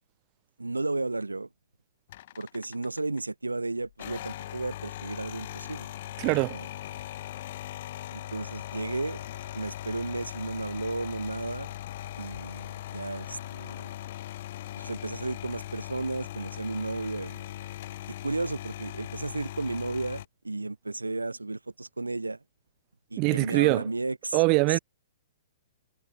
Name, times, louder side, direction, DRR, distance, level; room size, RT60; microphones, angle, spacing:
voice 1, 0.6-1.5 2.4-5.9 6.5-6.7 8.1-9.2 9.5-11.7 12.2-13.9 14.7-17.4 18.2-22.4 23.1-24.4 24.7-24.8, right 2 dB, 85° right, 0.8 m, -33 dB
sound 1, 2.1-3.2 3.9-20.2, left 13 dB, 50° left, 1.7 m, -40 dB
voice 2, 6.2-6.6 23.2-23.9 24.3-24.8, right 30 dB, 35° right, 0.4 m, -23 dB
figure-of-eight pair, 110°, 0 cm